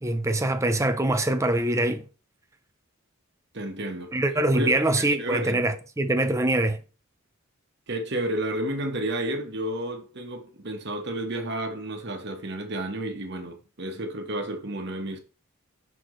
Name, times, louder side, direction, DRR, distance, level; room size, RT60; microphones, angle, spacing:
voice 1, 0.0-2.0 4.1-6.8, right 1 dB, 15° right, 0.7 m, -24 dB
voice 2, 3.5-4.2 4.5-4.7 5.0-5.6 7.9-15.2, right 1 dB, 55° right, 1.4 m, -31 dB
6.1 x 5.9 x 3.2 m
head